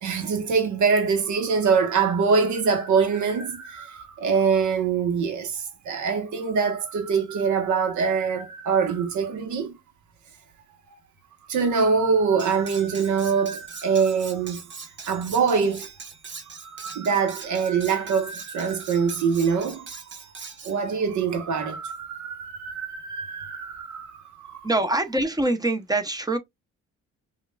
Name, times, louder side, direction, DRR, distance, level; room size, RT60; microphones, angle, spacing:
voice 1, 0.0-9.8 11.5-15.9 16.5-20.0 20.6-24.7, right 5 dB, 75° right, 1.1 m, -24 dB
Cutlery silverware, 12.4-20.8, right 5 dB, 40° right, 1.1 m, -42 dB
voice 2, 24.6-26.4, right 2 dB, 15° right, 0.7 m, -24 dB
5.1 x 2.5 x 2.3 m
cardioid pair, 90°, 30 cm